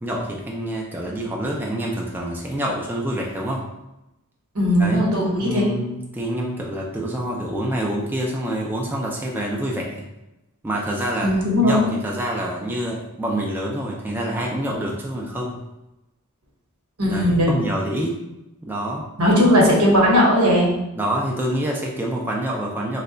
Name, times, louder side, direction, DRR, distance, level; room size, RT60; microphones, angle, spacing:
voice 1, 0.0-3.6 4.8-5.0 5.4-10.0 10.6-11.3 11.6-15.6 17.1-18.2 18.6-19.1 21.0-23.0, right 1 dB, 10° right, -2 dB, 0.4 m, -26 dB
voice 2, 4.5-5.7 11.2-11.8 17.0-17.5 19.2-20.7, equal, 80° right, -2 dB, 1.0 m, -17 dB
3.2 x 2.2 x 3.8 m, 0.93 s
head